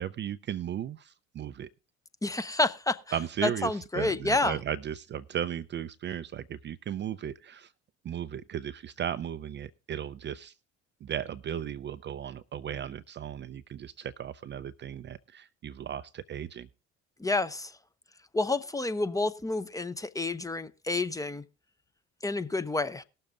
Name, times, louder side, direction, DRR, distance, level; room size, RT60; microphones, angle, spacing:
voice 1, 0.0-1.7 3.1-7.7 8.0-10.5 11.0-16.7, right 9 dB, 30° right, 0.5 m, -36 dB
voice 2, 2.2-3.0 3.4-4.6 17.2-17.7 18.3-21.4 22.2-23.0, left 2 dB, 10° left, 0.7 m, -29 dB
19.0 x 6.7 x 3.6 m
figure-of-eight pair, 60°, 35 cm